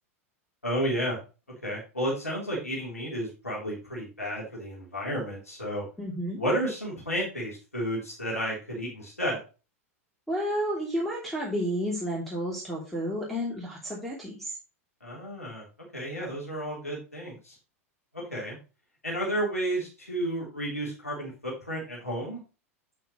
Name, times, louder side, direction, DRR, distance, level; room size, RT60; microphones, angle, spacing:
voice 1, 0.6-1.2 1.6-5.8 6.4-9.4 15.0-15.7 15.9-17.6 18.1-18.6 19.0-22.4, equal, 85° left, -4 dB, 3.5 m, -32 dB
voice 2, 6.0-6.4 10.3-14.5, equal, ahead, -3 dB, 2.9 m, -31 dB
8.8 x 7.0 x 3.1 m, 0.32 s
figure-of-eight pair, 90°, 8 cm